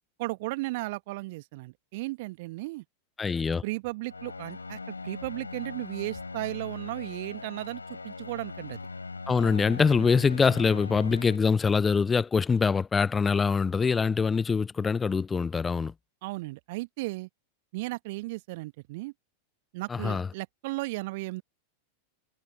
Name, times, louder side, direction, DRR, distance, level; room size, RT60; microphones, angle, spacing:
voice 1, 0.2-2.8 3.6-8.8 16.2-17.3 17.7-19.1 19.7-21.4, right 22 dB, 50° right, 1.6 m, -35 dB
voice 2, 3.2-3.6 9.3-15.9 19.9-20.3, left 5 dB, 15° left, 0.8 m, -24 dB
sound 1, 4.1-11.4, left 4 dB, 80° left, 7.0 m, -40 dB
figure-of-eight pair, 90°, 0 cm